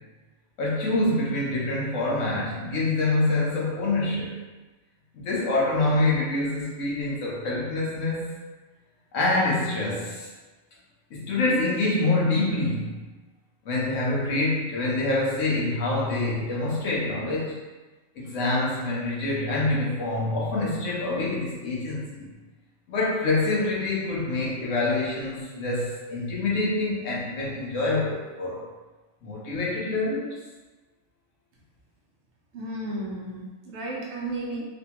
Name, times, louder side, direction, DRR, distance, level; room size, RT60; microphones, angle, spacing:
voice 1, 0.6-4.3 5.1-8.3 9.1-10.3 11.1-13.0 13.6-17.6 18.2-22.3 22.9-28.6 29.2-30.4, left 2 dB, 80° left, -5 dB, 1.2 m, -26 dB
voice 2, 32.5-34.7, right 1 dB, 65° right, -3 dB, 0.9 m, -33 dB
3.2 x 2.2 x 2.9 m, 1.2 s
omnidirectional pair, 1.3 m